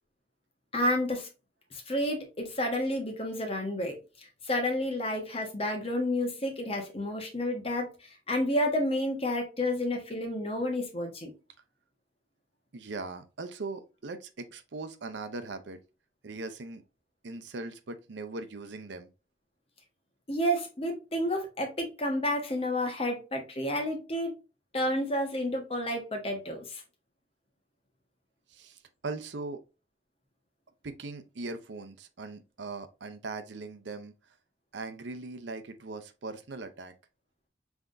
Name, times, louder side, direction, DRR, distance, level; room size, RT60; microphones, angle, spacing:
voice 1, 0.7-1.3 1.7-11.3 20.3-24.3 24.7-26.8, left 1 dB, 30° left, 1.3 m, -30 dB
voice 2, 12.7-15.8 16.2-16.8 17.2-19.1 28.5-29.6 30.8-34.1 34.7-36.9, right 3 dB, 80° right, 0.7 m, -40 dB
5.6 x 3.5 x 2.6 m
head